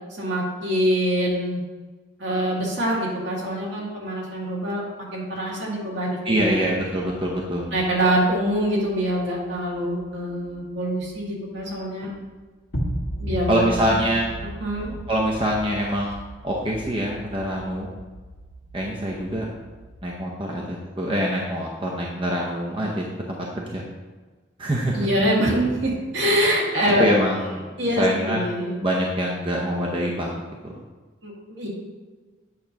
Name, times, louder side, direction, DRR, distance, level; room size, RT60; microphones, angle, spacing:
voice 1, 0.2-1.6 2.2-4.8 5.1-6.7 7.7-12.1 13.2-13.9 14.6-14.9 24.9-27.0 27.8-28.8 31.2-31.7, equal, 65° right, -4 dB, 2.0 m, -24 dB
voice 2, 6.3-7.7 12.0-12.1 13.5-14.3 15.1-16.2 16.4-17.9 18.7-19.4 20.0-20.6 21.0-23.8 24.6-25.0 27.0-27.7 28.0-28.4 28.8-30.3 30.6-30.8, equal, 25° right, -2 dB, 0.7 m, -24 dB
sound 1, 7.0-11.8 12.1-12.3 12.7-20.1, equal, 90° left, 1.5 m, -37 dB
8.9 x 3.0 x 5.7 m, 1.3 s
head